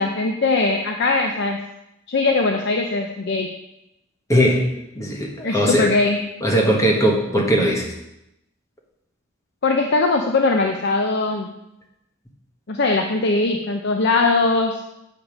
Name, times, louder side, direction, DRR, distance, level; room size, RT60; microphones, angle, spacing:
voice 1, 0.0-1.6 2.1-3.5 5.4-6.2 9.6-11.6 12.7-14.9, left 3 dB, 55° left, 3 dB, 0.6 m, -20 dB
voice 2, 4.3-4.6 4.9-5.9 6.4-7.9, equal, 15° left, -1 dB, 1.4 m, -19 dB
7.8 x 5.2 x 6.1 m, 0.88 s
head